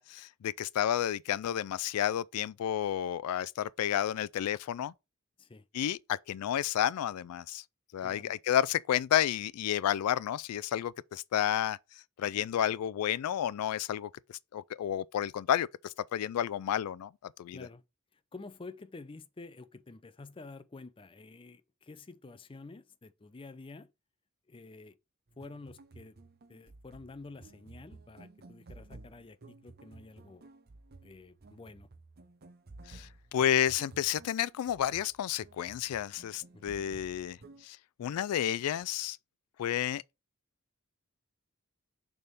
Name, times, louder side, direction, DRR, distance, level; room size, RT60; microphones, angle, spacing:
voice 1, 0.0-4.9 5.7-7.6 7.9-11.8 12.2-14.1 14.5-17.1 17.4-17.7 32.9-37.4 37.6-39.2 39.6-40.0, left 10 dB, 85° left, 0.3 m, -31 dB
voice 2, 8.0-8.3 17.5-17.8 18.3-23.9 24.5-25.0 25.4-26.2 26.5-30.4 31.0-31.9 36.5-36.8, left 3 dB, 25° left, 0.5 m, -49 dB
sound 1, 25.3-37.6, right 3 dB, 45° right, 0.7 m, -54 dB
6.7 x 3.6 x 5.2 m
head